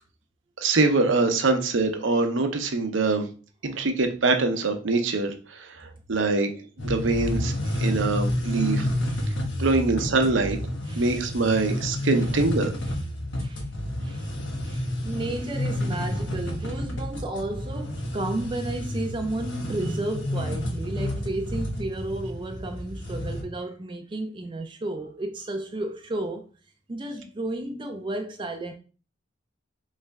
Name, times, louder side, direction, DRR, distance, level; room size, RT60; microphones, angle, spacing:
voice 1, 0.6-3.2 3.6-6.5 6.8-8.9 9.6-10.6 11.0-12.7, right 3 dB, 80° right, 0.7 m, -24 dB
sound 1, 6.8-23.4, left 1 dB, 75° left, 1.1 m, -30 dB
voice 2, 9.1-9.4 10.9-11.1 11.5-11.6 13.4-13.7 14.0-14.3 14.6-26.5 26.9-28.7, right 2 dB, 25° right, 0.4 m, -33 dB
4.1 x 3.2 x 3.4 m
head